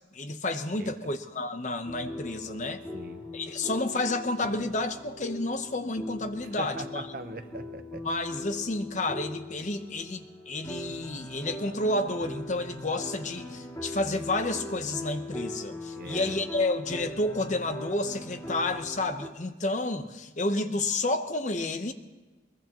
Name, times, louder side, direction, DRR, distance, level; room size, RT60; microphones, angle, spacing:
voice 1, 0.1-2.8 3.3-7.0 8.0-21.9, left 2 dB, 40° left, 8 dB, 0.9 m, -30 dB
sound 1, 1.9-19.3, left 1 dB, 20° left, 2.5 m, -41 dB
voice 2, 2.9-3.3 6.6-8.1 15.9-16.4, right 2 dB, 50° right, 9 dB, 0.9 m, -40 dB
22.0 x 21.0 x 3.0 m, 1.2 s
head